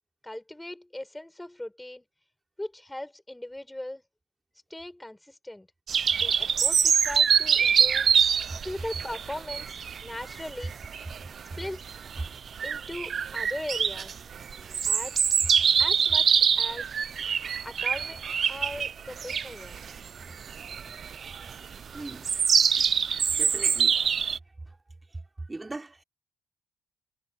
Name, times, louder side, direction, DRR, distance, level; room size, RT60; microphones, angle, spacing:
voice 1, 0.2-2.1 2.6-4.0 4.7-5.7 6.2-8.3 8.6-10.8 11.6-11.8 12.6-14.2 14.8-15.4 15.8-16.9 17.6-18.2 18.5-19.8, left 1 dB, 10° left, 7.2 m, -39 dB
sound 1, 5.9-24.4, right 7 dB, 50° right, 0.5 m, -25 dB
voice 2, 21.9-22.2 23.4-24.0 24.7-24.8 25.5-26.0, right 2 dB, 20° right, 4.3 m, -40 dB
cardioid pair, 90°, 0 cm